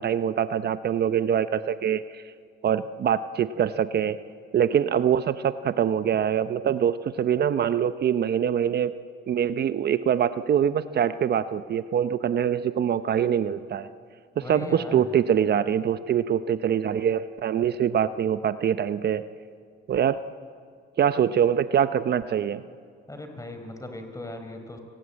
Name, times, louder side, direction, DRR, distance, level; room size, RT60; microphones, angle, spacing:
voice 1, 0.0-2.2 2.6-4.2 4.5-8.9 9.3-13.9 14.4-19.2 19.9-20.2 21.0-22.6, right 9 dB, 55° right, 12 dB, 0.7 m, -24 dB
voice 2, 14.4-15.1 23.1-24.8, left 1 dB, 15° left, 6 dB, 4.3 m, -38 dB
30.0 x 19.5 x 8.8 m, 2.1 s
cardioid pair, 90°, 20 cm